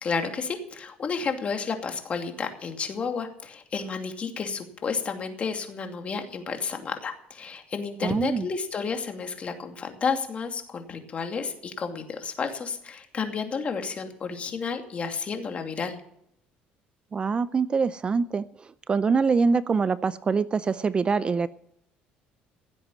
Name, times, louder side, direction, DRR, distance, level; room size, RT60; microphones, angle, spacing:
voice 1, 0.0-16.0, left 5 dB, 35° left, 5 dB, 2.5 m, -31 dB
voice 2, 8.0-8.5 17.1-18.4 18.9-21.5, right 5 dB, 30° right, 16 dB, 0.5 m, -24 dB
16.0 x 8.1 x 7.2 m, 0.75 s
cardioid pair, 110°, 4 cm